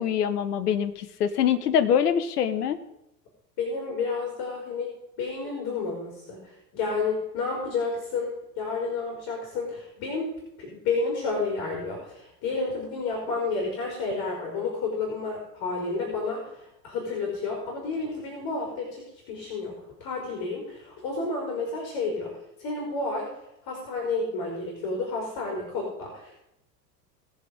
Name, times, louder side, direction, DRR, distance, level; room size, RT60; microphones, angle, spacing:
voice 1, 0.0-2.8, left 8 dB, 70° left, 12 dB, 1.2 m, -24 dB
voice 2, 3.6-4.9 5.2-8.3 8.6-10.3 10.6-19.7 20.0-22.3 22.6-23.3 23.7-26.4, left 3 dB, 50° left, -1 dB, 4.9 m, -30 dB
19.5 x 7.0 x 5.2 m, 0.84 s
figure-of-eight pair, 80°, 49 cm